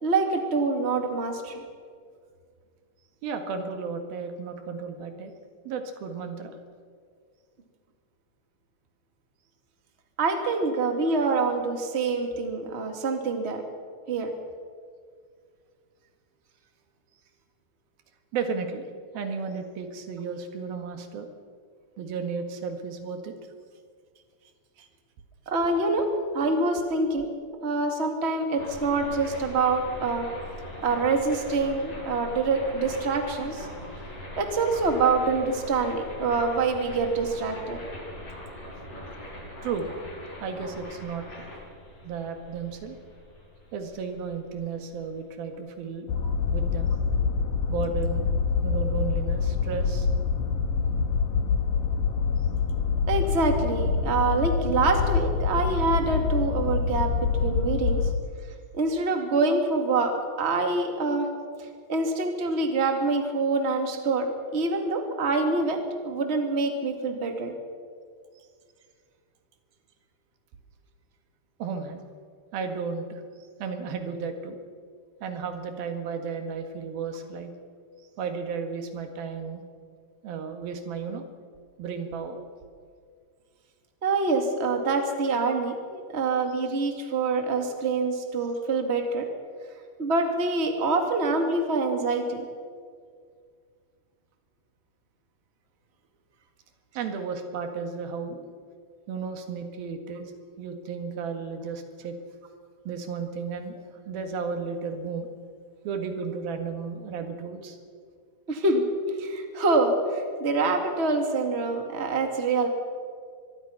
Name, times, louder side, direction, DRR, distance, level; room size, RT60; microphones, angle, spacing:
voice 1, 0.0-1.6 10.2-13.6 14.1-14.3 25.5-26.1 26.3-27.3 27.6-30.3 30.8-33.7 34.4-37.8 53.1-58.0 58.7-61.3 61.9-67.5 84.0-89.3 90.0-92.4 108.5-112.7, right 3 dB, 20° right, 4 dB, 1.9 m, -26 dB
voice 2, 3.2-5.3 5.7-6.6 18.3-18.9 19.1-21.3 22.0-23.3 24.8-24.9 39.6-39.9 40.4-41.5 42.0-43.0 43.7-46.1 46.5-46.9 47.7-48.3 48.6-50.1 71.6-72.0 72.5-73.2 73.6-74.6 75.2-77.5 78.2-79.6 80.2-81.3 81.8-82.4 97.0-98.5 99.1-100.3 100.6-102.2 102.9-105.3 105.8-107.8, right 5 dB, 85° right, 6 dB, 3.6 m, -33 dB
sound 1, 28.6-45.5, left 1 dB, 45° left, 8.9 m, -41 dB
sound 2, 46.1-58.2, left 5 dB, 65° left, 2.9 m, -26 dB
25.0 x 22.5 x 5.8 m, 2.1 s
omnidirectional pair, 4.1 m